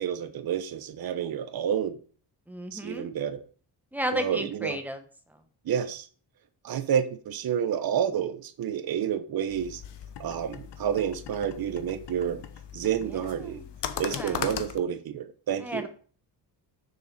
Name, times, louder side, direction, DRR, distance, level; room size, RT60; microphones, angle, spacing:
voice 1, 0.0-2.0 2.7-3.4 4.1-4.8 5.7-6.1 6.6-9.8 10.2-12.4 12.7-13.6 14.0-15.9, right 9 dB, 55° right, 10 dB, 1.0 m, -29 dB
voice 2, 2.5-3.1 3.9-5.0 13.0-14.4 15.6-15.9, equal, 5° right, 6 dB, 1.2 m, -34 dB
sound 1, 9.5-14.8, left 9 dB, 70° left, 1.0 m, -38 dB
7.0 x 6.8 x 5.3 m, 0.43 s
cardioid pair, 135°, 42 cm